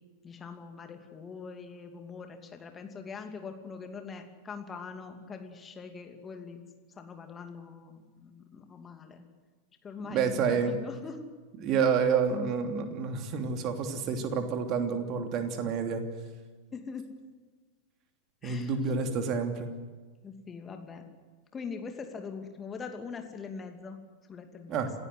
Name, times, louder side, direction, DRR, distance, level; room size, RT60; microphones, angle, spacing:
voice 1, 0.2-6.6 7.0-9.2 9.8-11.3 16.7-17.0 18.4-18.7 20.2-21.0 21.5-24.0 24.3-24.8, left 5 dB, 20° left, 5 dB, 2.7 m, -42 dB
voice 2, 10.1-10.8 11.6-16.0 18.4-19.7 24.7-24.9, right 6 dB, 35° right, 5 dB, 3.0 m, -29 dB
27.0 x 16.0 x 8.0 m, 1.4 s
figure-of-eight pair, 90°, 0 cm